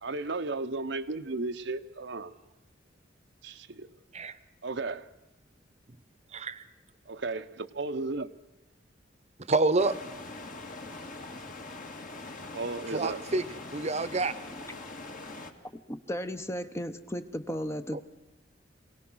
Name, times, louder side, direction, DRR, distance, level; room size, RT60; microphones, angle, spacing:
voice 1, 0.0-2.3 3.4-3.9 4.6-5.1 7.1-8.3 12.5-13.2, right 3 dB, 65° right, 0.8 m, -34 dB
voice 2, 9.5-10.0 12.9-13.4 13.7-14.3, right 3 dB, 35° right, 1.0 m, -27 dB
sound 1, 9.8-15.5, left 2 dB, 45° left, 1.9 m, -42 dB
voice 3, 15.9-18.0, equal, 15° left, 0.8 m, -35 dB
26.5 x 18.0 x 6.2 m
head